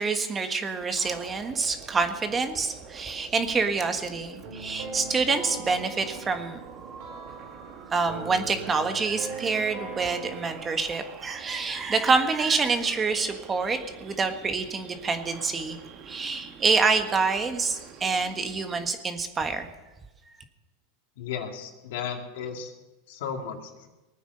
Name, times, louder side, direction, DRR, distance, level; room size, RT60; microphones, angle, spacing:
voice 1, 0.0-6.6 7.9-15.8 16.1-19.7, right 4 dB, 20° right, 7 dB, 1.5 m, -27 dB
sound 1, 0.9-18.9, right 7 dB, 45° right, 2.0 m, -46 dB
sound 2, 4.4-10.5, right 4 dB, 70° right, 5.8 m, -40 dB
voice 2, 21.2-22.7 23.1-23.9, left 7 dB, 75° left, 3 dB, 2.5 m, -35 dB
19.5 x 9.3 x 6.7 m, 1.1 s
supercardioid pair, 125°, 0 cm